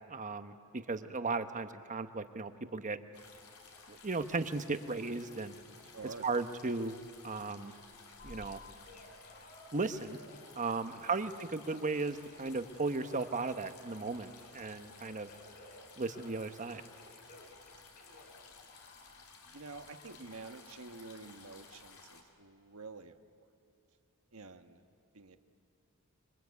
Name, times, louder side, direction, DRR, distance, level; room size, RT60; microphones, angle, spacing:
voice 1, 0.1-3.0 3.9-5.5 6.2-7.0 7.2-7.7 8.2-8.6 9.7-10.2 10.6-15.3 16.0-16.8, right 3 dB, 35° right, 9 dB, 1.0 m, -36 dB
sound 1, 3.1-22.2, left 4 dB, 80° left, 3.1 m, -56 dB
voice 2, 5.8-6.3 10.9-11.2 19.5-23.5 24.3-24.8 25.1-25.4, right 3 dB, 70° right, 7 dB, 1.4 m, -49 dB
Telephone, 8.2-12.5 13.0-16.4 16.7-19.2 19.7-20.2, left 2 dB, 40° left, 4.2 m, -57 dB
26.0 x 24.5 x 8.4 m, 2.7 s
head